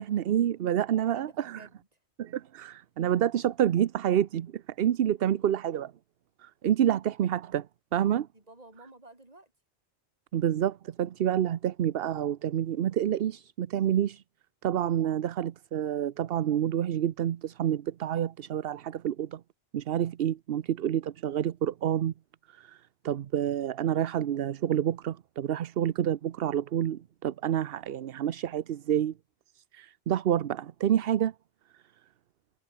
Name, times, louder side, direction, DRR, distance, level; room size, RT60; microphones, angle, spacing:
voice 1, 0.0-1.6 2.2-5.9 6.4-7.7 7.9-8.3 10.3-14.2 14.6-19.4 19.7-22.1 22.5-22.8 23.0-29.1 29.6-31.3, right 10 dB, 65° right, 0.9 m, -28 dB
voice 2, 0.9-2.0 5.2-5.5 8.3-9.5, right 2 dB, 35° right, 3.9 m, -53 dB
omnidirectional pair, 1.1 m